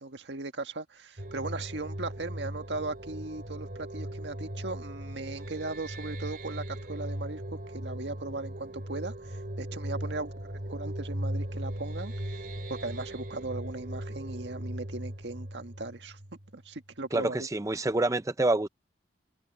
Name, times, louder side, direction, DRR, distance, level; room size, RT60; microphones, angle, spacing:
voice 1, 0.0-7.4 7.7-10.3 10.7-12.4 12.7-16.2 16.5-17.5, right 2 dB, 85° right, 1.7 m, -38 dB
sound 1, 1.2-16.6, right 1 dB, 55° right, 2.9 m, -38 dB
voice 2, 17.1-18.7, right 2 dB, 20° right, 0.6 m, -27 dB
head